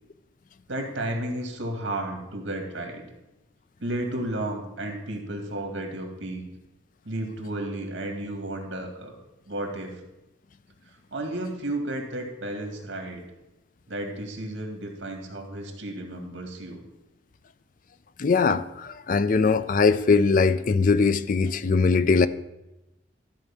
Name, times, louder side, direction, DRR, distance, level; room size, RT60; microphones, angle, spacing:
voice 1, 0.7-3.0 3.8-6.4 7.0-9.2 9.5-9.9 10.9-13.2 13.9-16.9, right 1 dB, 70° right, 3 dB, 2.1 m, -33 dB
voice 2, 18.2-22.3, left 4 dB, 45° left, 14 dB, 0.4 m, -21 dB
13.0 x 4.6 x 7.2 m, 0.95 s
head